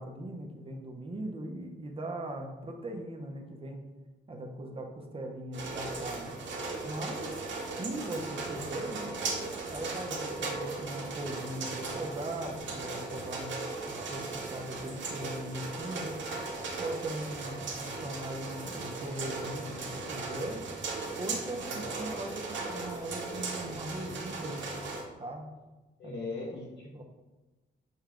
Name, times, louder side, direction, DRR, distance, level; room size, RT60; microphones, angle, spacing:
voice 1, 0.0-3.9 4.3-6.3 6.8-7.4 7.8-9.1 9.7-13.6 13.9-16.1 16.8-20.6 21.2-24.7 25.2-25.5 26.0-26.2 26.9-27.0, right 1 dB, 30° right, 3 dB, 0.6 m, -39 dB
sound 1, 5.5-25.0, right 3 dB, 75° right, 0.9 m, -37 dB
voice 2, 21.6-21.9 26.0-27.0, left 3 dB, 65° left, -3 dB, 0.9 m, -40 dB
6.5 x 2.2 x 3.6 m, 1.2 s
wide cardioid pair, 120°, 19 cm